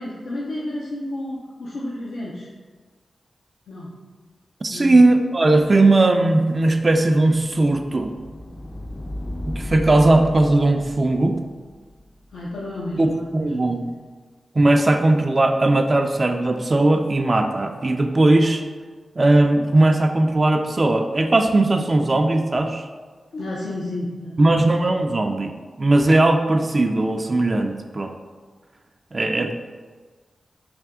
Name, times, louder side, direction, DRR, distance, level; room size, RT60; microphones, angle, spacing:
voice 1, 0.0-2.5 3.7-3.9 4.7-5.0 12.3-13.5 13.8-13.9 23.3-24.7, left 1 dB, 85° left, -6 dB, 0.5 m, -31 dB
voice 2, 4.6-8.1 9.5-11.4 13.0-13.9 14.6-18.6 19.2-22.9 24.4-25.5 25.8-28.1 29.1-29.5, right 2 dB, 45° right, 5 dB, 0.4 m, -18 dB
sound 1, 7.3-13.5, left 1 dB, 25° left, 0.4 m, -36 dB
3.4 x 2.7 x 3.6 m, 1.4 s
cardioid pair, 40°, 0 cm